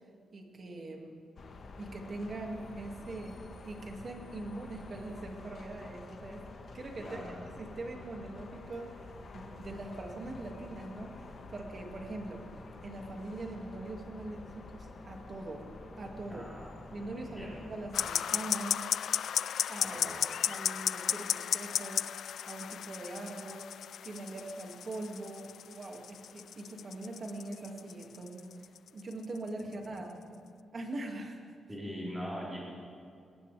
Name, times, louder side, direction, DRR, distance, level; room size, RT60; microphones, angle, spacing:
voice 1, 0.3-1.2 1.8-3.4 3.7-6.5 6.7-7.3 7.6-9.1 9.3-12.4 12.8-15.7 16.0-16.5 16.9-18.8 19.7-20.1 20.5-23.7 24.0-30.4 30.7-31.4, right 2 dB, 40° right, 2 dB, 2.2 m, -42 dB
sound 1, 1.4-18.1, left 3 dB, 50° left, 1.6 m, -48 dB
voice 2, 7.0-7.4 16.3-16.7 17.2-17.5 19.8-20.2 29.6-29.7 31.7-32.6, equal, 5° right, -7 dB, 4.2 m, -41 dB
sound 2, 17.9-30.0, left 9 dB, 75° left, 0.3 m, -35 dB
21.5 x 18.0 x 3.4 m, 2.4 s
wide cardioid pair, 135°, 0 cm